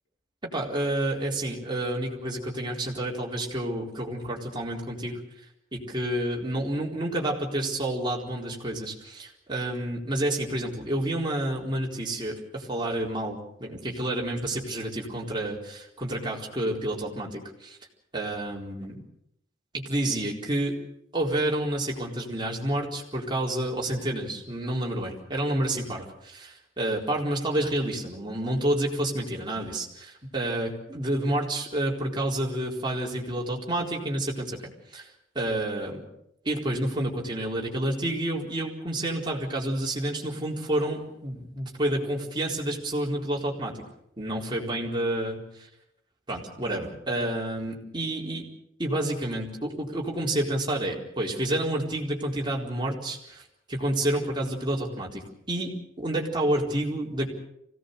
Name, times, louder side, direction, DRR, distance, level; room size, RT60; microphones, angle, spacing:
voice 1, 0.4-5.2 5.7-17.8 18.1-19.0 19.7-20.8 21.1-34.6 34.9-35.1 35.3-36.0 36.4-43.8 44.2-45.7 46.3-48.4 48.8-53.4 53.7-55.7 56.0-57.3, right 1 dB, 25° right, -2 dB, 4.2 m, -29 dB
25.0 x 17.5 x 6.8 m, 0.78 s
head